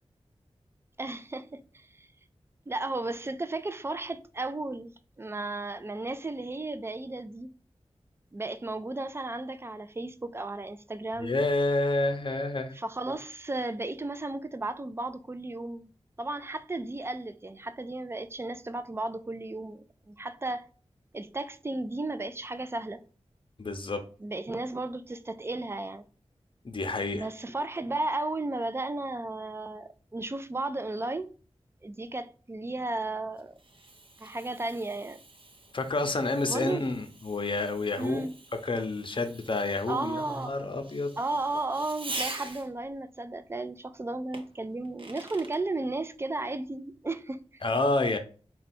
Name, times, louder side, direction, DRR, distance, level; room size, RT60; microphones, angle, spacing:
voice 1, 1.0-2.1 2.7-7.5 8.3-11.3 12.7-15.9 16.2-20.7 21.1-23.0 24.2-26.0 27.1-31.3 31.8-33.5 34.2-35.2 36.5-36.8 38.0-38.3 39.9-40.6 41.2-47.4, right 2 dB, 25° right, 0.4 m, -34 dB
voice 2, 11.2-12.7 23.6-24.0 26.6-27.3 35.7-38.2 38.6-41.1 47.6-48.2, left 2 dB, 50° left, 0.7 m, -29 dB
Fireworks, 33.0-42.9 44.3-45.6, right 2 dB, 50° right, 0.8 m, -44 dB
4.1 x 2.3 x 4.2 m
wide cardioid pair, 60°, 11 cm